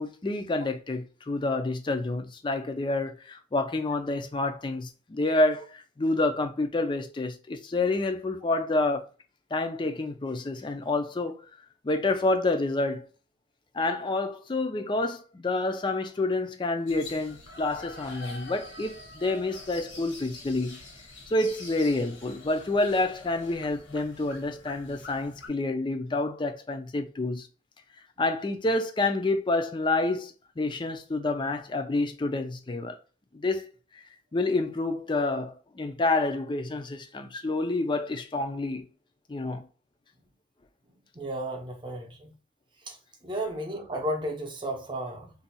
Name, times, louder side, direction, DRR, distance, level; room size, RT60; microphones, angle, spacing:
voice 1, 0.0-9.1 9.5-11.4 11.8-13.1 13.7-20.8 21.3-27.5 28.2-33.0 33.3-33.7 34.3-38.9 39.3-39.6, left 2 dB, 25° left, 0.4 m, -28 dB
sound 1, 16.9-25.5, left 2 dB, 80° left, 1.2 m, -46 dB
voice 2, 41.1-42.3 42.9-43.0 43.2-45.3, right 1 dB, 25° right, 0.7 m, -33 dB
2.6 x 2.3 x 4.0 m
head